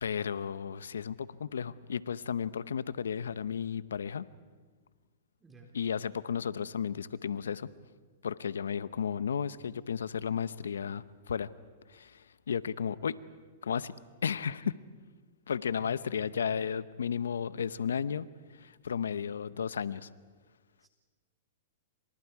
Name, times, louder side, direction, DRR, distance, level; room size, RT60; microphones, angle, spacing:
voice 1, 0.0-4.2 5.7-7.7 8.2-11.5 11.9-13.2 13.6-13.9 14.2-14.7 15.5-18.3 18.6-20.1, left 7 dB, 90° left, 16 dB, 0.8 m, -33 dB
voice 2, 5.4-5.7 15.8-16.3 20.8-20.9, right 1 dB, 15° right, 2 dB, 3.9 m, -54 dB
29.0 x 26.0 x 4.8 m, 1.5 s
hypercardioid pair, 130°, 0 cm